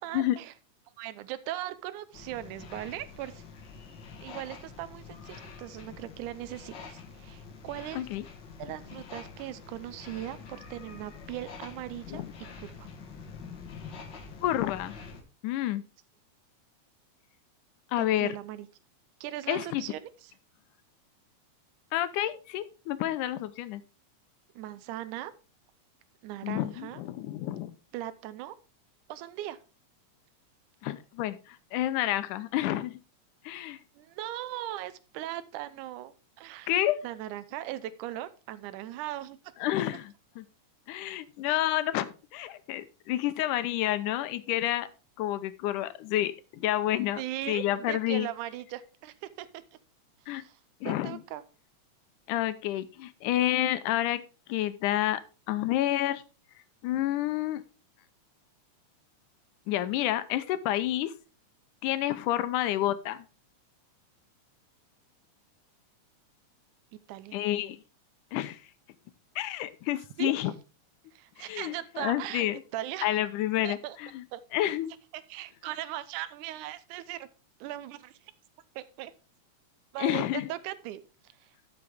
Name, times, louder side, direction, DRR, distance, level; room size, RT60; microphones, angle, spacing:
voice 1, 0.0-0.5 1.0-3.4 4.2-8.1 8.6-12.2 12.6-12.9 18.0-18.7 19.2-20.1 24.6-25.3 26.2-27.0 27.9-28.6 29.1-29.6 34.0-36.7 37.0-39.4 41.4-41.6 47.2-49.6 50.3-50.6 50.9-51.4 67.1-67.4 70.2-70.3 71.1-72.5 72.7-73.1 73.6-74.0 74.3-74.4 75.1-77.3 77.6-78.2 78.8-79.1 79.9-81.0, right 14 dB, 80° right, 14 dB, 2.1 m, -39 dB
sound 1, 2.1-15.2, left 5 dB, 50° left, 1.6 m, -46 dB
voice 2, 7.9-8.2 12.1-12.3 14.4-15.0 15.4-15.8 17.9-18.4 19.5-19.8 21.9-23.8 26.4-27.7 30.8-33.0 33.4-33.8 36.7-37.0 39.6-40.4 40.9-44.9 45.2-47.2 47.5-48.3 50.3-50.4 50.8-51.2 52.3-54.2 54.5-55.2 55.5-56.2 56.8-57.6 59.7-61.1 61.8-63.2 67.3-67.8 68.3-68.6 69.4-70.5 71.4-72.6 73.0-74.2 74.5-74.9 80.0-80.5, left 13 dB, 85° left, 13 dB, 2.2 m, -29 dB
12.0 x 6.7 x 3.4 m, 0.33 s
omnidirectional pair, 3.6 m